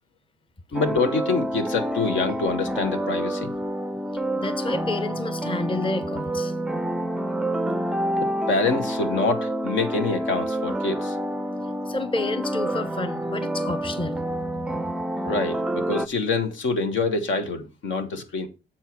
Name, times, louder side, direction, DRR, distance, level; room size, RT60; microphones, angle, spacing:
voice 1, 0.7-3.5 8.2-11.2 15.2-18.5, left 3 dB, 75° left, 1.5 m, -26 dB
sound 1, 0.7-16.1, right 1 dB, 5° right, 0.4 m, -28 dB
voice 2, 4.4-6.5 11.9-14.2, left 2 dB, 25° left, 0.9 m, -29 dB
7.4 x 4.5 x 6.0 m
cardioid pair, 90°, 20 cm